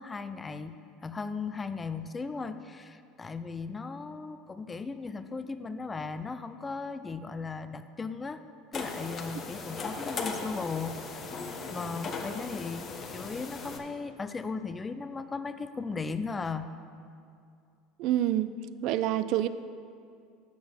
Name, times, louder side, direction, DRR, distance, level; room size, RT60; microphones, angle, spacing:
voice 1, 0.0-8.4 8.7-16.7, left 4 dB, 20° left, 11 dB, 0.5 m, -37 dB
sound 1, 8.7-13.8, left 4 dB, 40° left, 1.0 m, -38 dB
voice 2, 18.0-18.5 18.8-19.5, right 12 dB, 60° right, 14 dB, 0.3 m, -27 dB
7.0 x 6.3 x 6.2 m, 2.4 s
hypercardioid pair, 85°, 0 cm